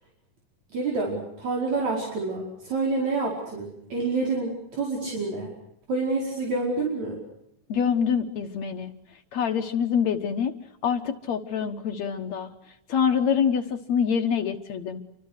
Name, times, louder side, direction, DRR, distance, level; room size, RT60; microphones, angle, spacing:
voice 1, 0.7-5.5 5.9-7.2, right 3 dB, 65° right, -1 dB, 6.4 m, -28 dB
voice 2, 7.7-8.9 9.3-10.5 10.8-12.5 12.9-15.0, left 7 dB, 65° left, 6 dB, 2.4 m, -25 dB
29.5 x 25.0 x 6.6 m, 0.79 s
omnidirectional pair, 3.5 m